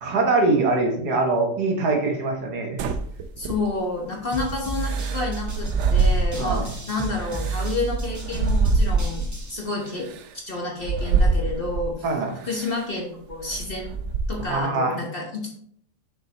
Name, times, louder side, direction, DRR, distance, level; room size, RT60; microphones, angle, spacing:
voice 1, 0.0-2.8 6.4-6.7 12.0-12.4 14.4-15.0, right 3 dB, 70° right, 2 dB, 1.6 m, -23 dB
sound 1, 2.8-4.0 4.8-6.8 7.2-9.4 10.1-10.2 10.8-12.0 12.5-12.8 13.3-14.6, right 3 dB, 85° right, 0.6 m, -24 dB
voice 2, 3.4-10.1 10.3-12.0 12.4-13.9 14.3-15.5, left 3 dB, 40° left, -1 dB, 1.1 m, -29 dB
sound 2, 4.3-9.6, right 4 dB, 20° right, 0.5 m, -32 dB
6.8 x 5.6 x 2.9 m, 0.63 s
omnidirectional pair, 1.8 m